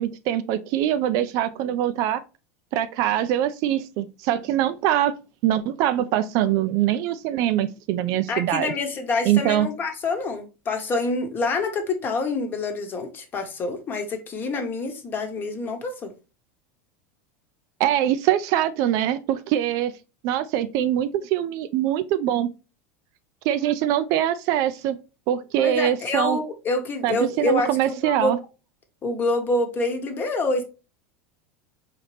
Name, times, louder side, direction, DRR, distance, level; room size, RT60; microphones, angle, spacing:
voice 1, 0.0-2.2 2.7-5.1 5.4-8.7 9.2-9.7 17.8-19.9 20.2-22.5 23.4-25.0 25.3-26.4 27.0-28.4, right 12 dB, 55° right, 0.4 m, -23 dB
voice 2, 8.3-16.1 25.6-28.3 29.0-30.6, left 3 dB, 30° left, 1.0 m, -26 dB
4.2 x 2.9 x 3.2 m
supercardioid pair, 120°, 7 cm